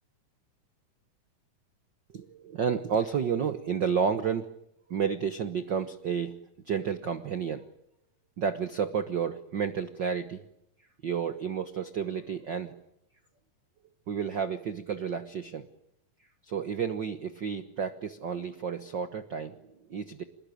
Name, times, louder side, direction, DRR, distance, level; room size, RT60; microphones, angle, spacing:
voice 1, 2.1-4.5 4.9-6.4 6.6-7.6 8.4-10.4 11.0-12.7 14.1-15.7 16.5-19.6 19.9-20.2, right 7 dB, 85° right, 10 dB, 0.9 m, -31 dB
26.5 x 21.0 x 9.3 m, 0.79 s
omnidirectional pair, 3.9 m